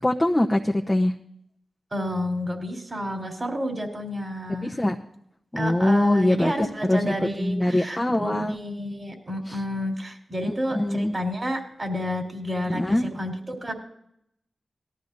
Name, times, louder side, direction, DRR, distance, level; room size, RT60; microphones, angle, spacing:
voice 1, 0.0-1.1 4.6-5.0 5.5-8.6 9.5-9.6 10.4-11.1 12.7-13.1, left 1 dB, 20° left, 2 dB, 0.9 m, -23 dB
voice 2, 1.9-4.8 5.6-13.7, equal, 35° right, 3 dB, 3.6 m, -30 dB
18.5 x 13.5 x 2.7 m, 0.74 s
cardioid pair, 45°, 0 cm